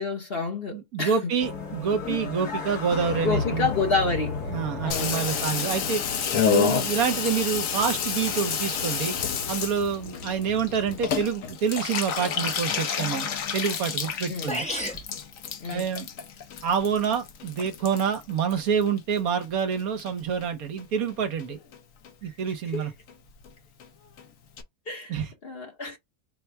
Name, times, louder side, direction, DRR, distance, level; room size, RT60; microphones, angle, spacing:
voice 1, 0.0-1.2 3.2-4.4 4.8-5.5 14.3-14.5 15.6-15.9 22.2-22.3 22.7-22.9 24.9-26.0, left 4 dB, 45° left, 1.1 m, -29 dB
voice 2, 0.7-3.7 4.5-6.0 6.3-9.2 9.5-14.7 15.7-16.1 16.6-21.6 22.2-22.9 25.1-25.3, right 7 dB, 70° right, 1.3 m, -27 dB
sound 1, 1.4-11.1, left 4 dB, 80° left, 1.9 m, -36 dB
Water tap faucet / Bathtub (filling or washing), 4.9-19.4 19.7-20.5 20.8-20.9 21.1-21.2 21.4-21.8 22.0-22.1 22.4-22.5 22.7-22.8 23.1-23.2 23.4-23.5 23.8-23.9 24.2-24.3 24.6-24.7, left 7 dB, 65° left, 1.1 m, -30 dB
sound 2, 14.5-15.1, equal, 5° left, 0.6 m, -30 dB
4.1 x 2.2 x 4.5 m
omnidirectional pair, 1.7 m